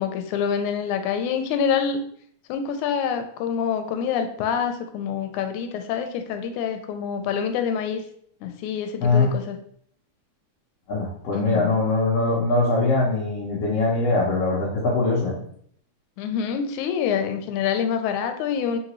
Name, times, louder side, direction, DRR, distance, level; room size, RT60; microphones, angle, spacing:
voice 1, 0.0-2.0 2.5-8.0 8.4-9.6 11.3-11.7 16.2-18.8, left 7 dB, 85° left, 7 dB, 2.0 m, -26 dB
voice 2, 10.9-15.4, left 3 dB, 65° left, -6 dB, 1.7 m, -22 dB
3.9 x 3.8 x 3.0 m, 0.63 s
omnidirectional pair, 3.3 m